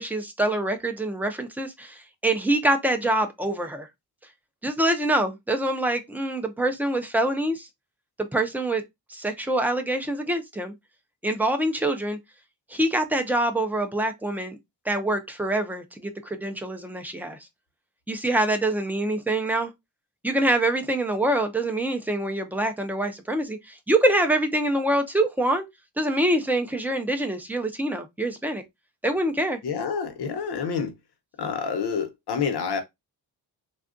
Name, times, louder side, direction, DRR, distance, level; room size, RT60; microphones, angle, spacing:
voice 1, 0.0-3.9 4.6-7.7 8.3-8.8 9.1-10.7 11.2-12.2 12.7-14.6 14.9-17.4 18.1-19.7 20.2-25.6 26.0-28.6 29.0-29.6, right 1 dB, 5° right, 0.3 m, -25 dB
voice 2, 29.6-30.9 31.4-32.8, left 6 dB, 65° left, 0.8 m, -28 dB
3.5 x 2.3 x 2.4 m
wide cardioid pair, 125°, 42 cm